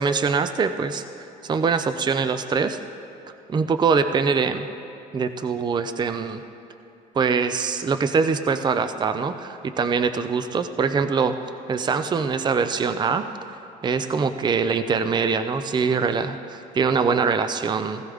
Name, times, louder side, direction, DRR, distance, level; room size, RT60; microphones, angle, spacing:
voice 1, 0.0-2.8 3.5-4.7 5.1-6.4 7.1-11.4 11.7-13.2 13.8-18.0, right 5 dB, 25° right, 10 dB, 0.5 m, -23 dB
16.5 x 16.0 x 3.5 m, 2.6 s
cardioid pair, 110°, 17 cm